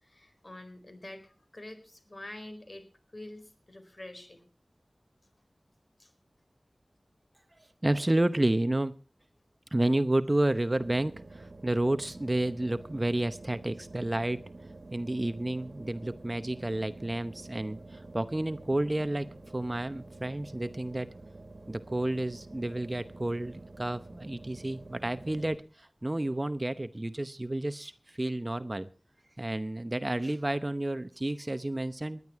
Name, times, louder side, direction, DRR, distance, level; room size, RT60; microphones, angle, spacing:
voice 1, 0.0-2.9 3.1-4.5 6.0-6.1, left 1 dB, 45° left, 8 dB, 4.4 m, -46 dB
voice 2, 7.8-8.9 9.7-14.4 14.9-19.3 19.5-21.1 21.7-28.9 29.4-32.2, right 1 dB, 30° right, 12 dB, 0.8 m, -30 dB
sound 1, 10.7-25.6, right 2 dB, 65° right, 1.7 m, -48 dB
19.5 x 11.0 x 4.7 m, 0.36 s
wide cardioid pair, 65°, 0 cm